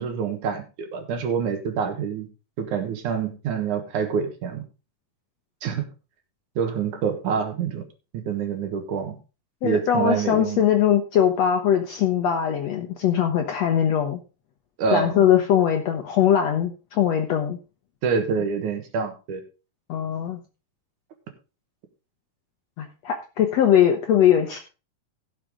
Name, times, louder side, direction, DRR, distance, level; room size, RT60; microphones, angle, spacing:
voice 1, 0.0-2.3 2.6-4.6 5.6-5.9 6.6-7.8 8.1-9.2 9.6-10.6 14.8-15.2 18.0-19.4, right 6 dB, 65° right, 6 dB, 2.7 m, -26 dB
voice 2, 9.6-14.2 14.9-17.6 19.9-20.4 22.8-24.6, left 9 dB, 70° left, 5 dB, 1.6 m, -21 dB
16.0 x 6.7 x 3.7 m, 0.32 s
omnidirectional pair, 4.0 m